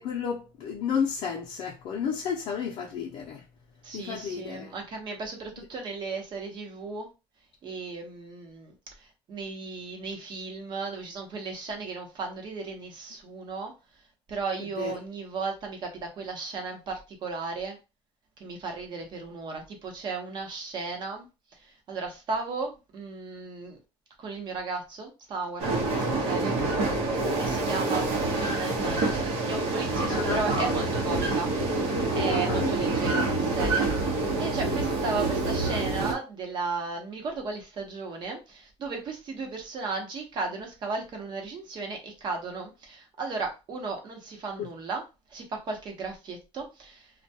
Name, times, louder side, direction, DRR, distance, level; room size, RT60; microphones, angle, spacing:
voice 1, 0.0-3.4 3.9-4.7 14.8-14.9 30.1-30.4 32.3-32.7 44.6-44.7, left 7 dB, 55° left, 0.5 m, -32 dB
voice 2, 3.8-7.1 7.6-13.7 14.3-17.8 18.4-21.3 21.6-23.8 24.2-26.6 26.9-34.1 34.4-45.0 45.3-47.1, right 4 dB, 45° right, 0.8 m, -35 dB
sound 1, 25.6-36.1, right 2 dB, 85° right, 0.8 m, -27 dB
2.2 x 2.2 x 2.7 m
cardioid pair, 135°, 10 cm